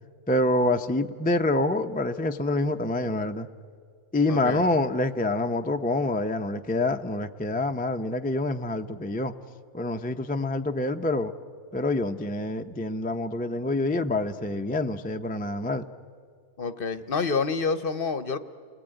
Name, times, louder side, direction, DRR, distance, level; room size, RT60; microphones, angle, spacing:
voice 1, 0.3-3.5 4.1-9.3 9.7-11.3 11.7-15.9, left 2 dB, 15° left, 6 dB, 0.3 m, -26 dB
voice 2, 4.3-4.6 16.6-18.4, left 4 dB, 45° left, 12 dB, 0.9 m, -28 dB
30.0 x 20.5 x 9.1 m, 2.1 s
omnidirectional pair, 1.6 m